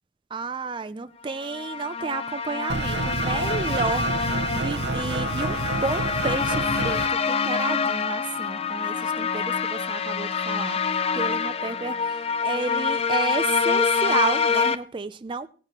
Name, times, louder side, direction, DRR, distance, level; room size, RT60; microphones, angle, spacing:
voice 1, 0.3-4.1 4.5-15.5, right 4 dB, 30° right, 0.4 m, -31 dB
sound 1, 1.4-14.8, left 5 dB, 35° left, 0.5 m, -26 dB
sound 2, 2.7-7.1, right 4 dB, 80° right, 0.6 m, -29 dB
17.5 x 9.6 x 3.0 m
head